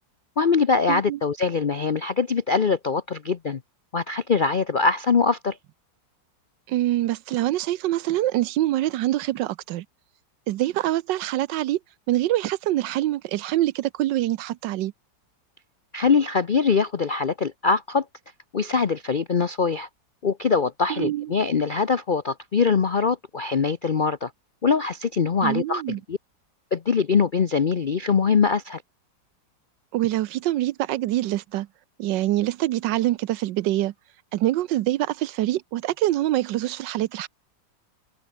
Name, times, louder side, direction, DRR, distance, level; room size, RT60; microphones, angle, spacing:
voice 1, 0.4-3.6 3.9-5.6 15.9-18.0 18.5-19.9 20.2-24.3 24.6-26.2 26.7-28.8, left 5 dB, 55° left, 0.5 m, -23 dB
voice 2, 0.9-1.2 6.7-9.8 10.5-11.8 12.1-14.9 20.9-21.3 25.4-26.0 29.9-31.7 32.0-33.9 34.3-37.3, right 14 dB, 80° right, 1.3 m, -25 dB
omnidirectional pair, 2.0 m